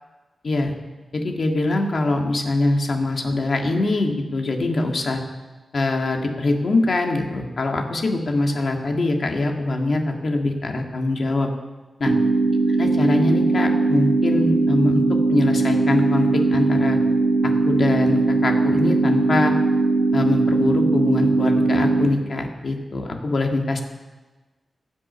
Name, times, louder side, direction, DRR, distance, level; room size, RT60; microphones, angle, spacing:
voice 1, 1.1-5.2 5.7-11.5 12.0-12.1 12.8-15.0 15.3-17.0 17.6-19.5 20.1-23.8, left 2 dB, 50° left, 2 dB, 1.7 m, -23 dB
sound 1, 12.1-22.1, right 3 dB, 30° right, 1.2 m, -20 dB
16.5 x 7.6 x 6.9 m, 1.2 s
wide cardioid pair, 165°, 0 cm